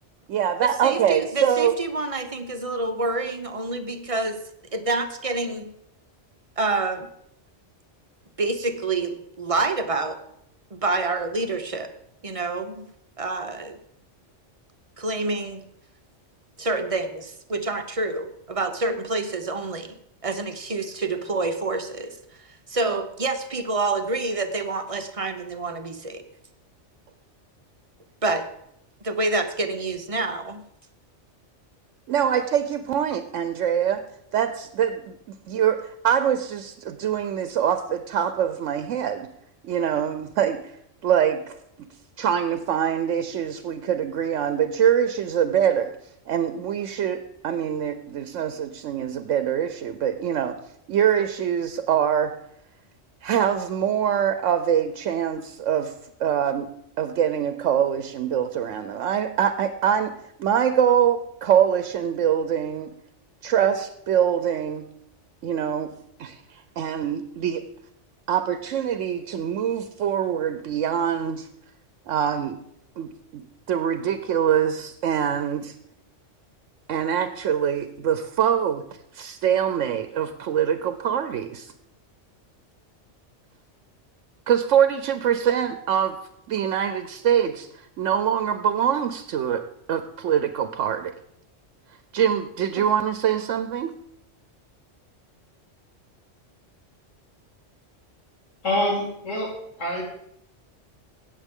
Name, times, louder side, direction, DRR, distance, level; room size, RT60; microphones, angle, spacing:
voice 1, 0.3-1.8 32.1-34.0 34.3-39.3 39.6-40.8 41.0-41.6 42.2-45.9 46.3-50.6 50.9-52.3 53.2-55.9 56.2-56.7 57.0-62.9 63.4-64.9 65.4-65.9 66.2-67.6 68.3-71.5 72.1-72.6 73.0-73.4 73.7-75.8 76.9-78.8 79.1-81.7 84.5-86.2 86.5-89.6 89.9-91.1 92.1-93.9, right 9 dB, 85° right, 10 dB, 1.0 m, -24 dB
voice 2, 0.8-4.4 4.7-5.7 6.6-7.1 8.4-10.2 10.7-11.9 12.2-12.8 13.2-13.8 15.0-15.6 16.6-20.0 20.2-22.1 22.7-26.2 28.2-28.4 29.0-30.6, right 3 dB, 35° right, 7 dB, 0.7 m, -27 dB
voice 3, 98.6-99.5 99.8-100.0, left 1 dB, 80° left, -3 dB, 3.2 m, -25 dB
17.0 x 7.3 x 3.6 m, 0.76 s
omnidirectional pair, 1.3 m